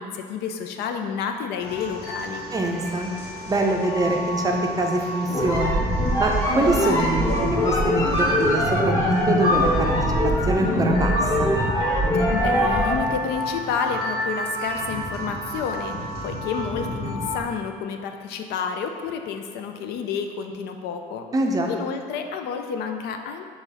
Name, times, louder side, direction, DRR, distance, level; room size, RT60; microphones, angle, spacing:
voice 1, 0.0-2.4 12.3-21.3 21.7-23.4, left 6 dB, 80° left, 5 dB, 0.4 m, -30 dB
sound 1, 1.6-17.4, equal, 60° left, 1.3 m, -32 dB
voice 2, 2.5-3.1 3.5-5.8 6.2-10.2 10.4-11.5 21.3-21.7, right 2 dB, 20° right, 1 dB, 0.5 m, -24 dB
sound 2, 5.3-13.1, equal, 20° left, 0.9 m, -22 dB
3.8 x 3.0 x 4.1 m, 2.1 s
cardioid pair, 110°, 17 cm